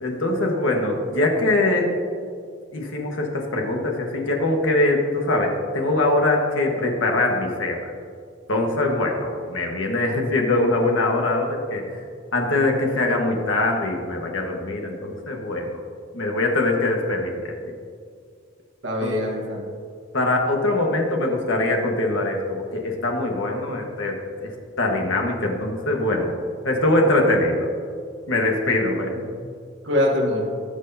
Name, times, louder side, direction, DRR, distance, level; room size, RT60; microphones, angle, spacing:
voice 1, 0.0-1.9 2.7-7.8 8.5-12.0 12.3-15.8 16.1-17.7 19.0-19.2 20.1-26.4 26.6-27.7 28.3-29.1, left 2 dB, 70° left, 1 dB, 1.4 m, -23 dB
voice 2, 18.8-19.7 29.1-29.5 29.8-30.4, left 1 dB, 65° right, -2 dB, 1.3 m, -24 dB
18.5 x 6.4 x 2.7 m, 2.2 s
head